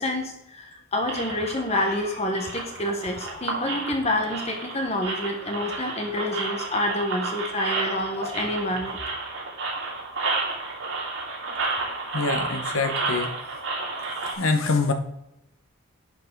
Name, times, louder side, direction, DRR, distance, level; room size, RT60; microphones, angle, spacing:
voice 1, 0.0-9.0, left 1 dB, 30° left, 2 dB, 1.3 m, -28 dB
sound 1, 1.0-14.3, right 3 dB, 60° right, 2.7 m, -32 dB
voice 2, 12.1-13.3 14.4-14.9, left 3 dB, 70° left, 6 dB, 1.3 m, -24 dB
10.5 x 5.8 x 4.7 m, 0.84 s
head